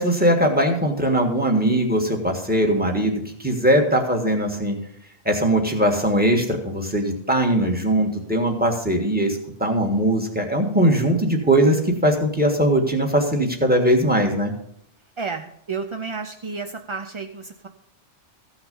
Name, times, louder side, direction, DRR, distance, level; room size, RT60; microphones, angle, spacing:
voice 1, 0.0-4.8 5.2-14.5, right 1 dB, 10° right, 3 dB, 1.6 m, -20 dB
voice 2, 15.2-17.7, right 4 dB, 40° right, 6 dB, 0.4 m, -31 dB
15.0 x 5.9 x 5.4 m, 0.71 s
omnidirectional pair, 1.2 m